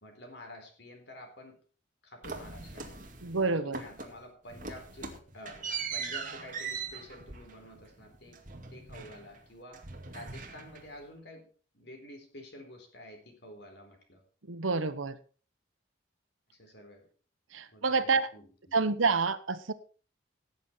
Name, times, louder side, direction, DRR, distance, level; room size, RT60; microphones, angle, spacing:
voice 1, 0.0-1.6 2.0-3.1 3.5-8.4 8.7-11.5 11.7-14.2 16.5-17.1 17.7-18.8, left 1 dB, 60° left, 4 dB, 4.1 m, -50 dB
sound 1, 2.2-3.4 3.7-4.2 4.5-9.4 9.7-11.0, right 5 dB, 45° right, 2.2 m, -40 dB
voice 2, 3.2-3.8 14.5-15.2 17.5-18.3 18.7-19.7, right 4 dB, 90° right, 13 dB, 1.1 m, -28 dB
17.0 x 8.2 x 4.5 m, 0.39 s
head